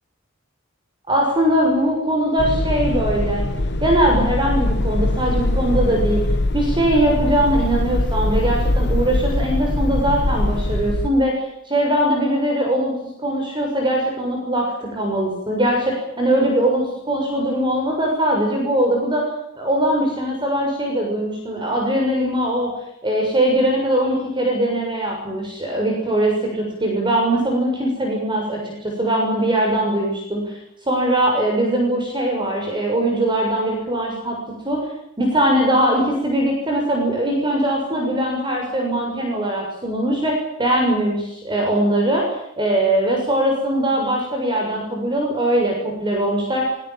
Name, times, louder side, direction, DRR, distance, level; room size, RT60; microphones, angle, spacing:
voice 1, 1.1-3.4 3.8-6.2 6.5-19.3 19.6-22.7 23.0-30.6 30.9-34.4 34.7-34.9 35.2-46.8, right 1 dB, 25° right, 0 dB, 6.9 m, -21 dB
sound 1, 2.4-11.1, left 1 dB, 55° left, 1.3 m, -22 dB
24.0 x 23.0 x 7.7 m, 0.80 s
head